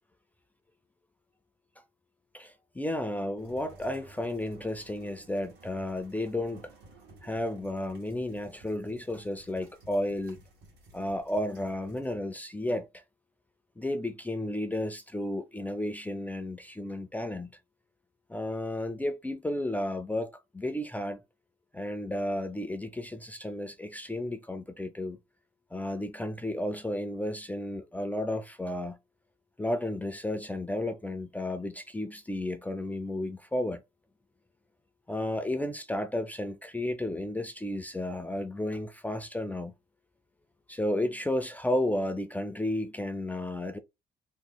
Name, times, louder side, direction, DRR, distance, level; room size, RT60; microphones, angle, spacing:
voice 1, 2.3-6.7 7.2-10.4 10.9-13.0 13.8-17.5 18.3-21.2 21.7-25.2 25.7-29.0 29.6-33.8 35.1-39.7 40.7-43.8, left 1 dB, 10° left, 0.4 m, -33 dB
sound 1, 3.4-12.2, right 2 dB, 75° right, 1.4 m, -55 dB
2.9 x 2.0 x 3.8 m
cardioid pair, 110°, 17 cm